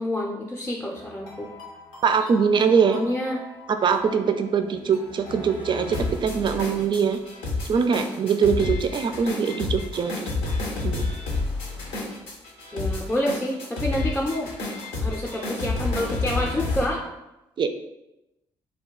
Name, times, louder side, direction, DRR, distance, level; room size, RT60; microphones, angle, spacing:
voice 1, 0.0-1.5 2.9-3.4 12.7-14.5 15.0-17.1, left 1 dB, 15° left, -1 dB, 0.5 m, -28 dB
sound 1, 0.9-16.9, left 3 dB, 85° left, 0.6 m, -30 dB
voice 2, 2.0-3.0 3.7-7.2 7.6-10.1 10.8-11.1 17.6-17.7, right 6 dB, 45° right, 8 dB, 0.3 m, -22 dB
2.4 x 2.2 x 3.7 m, 0.95 s
hypercardioid pair, 45°, 12 cm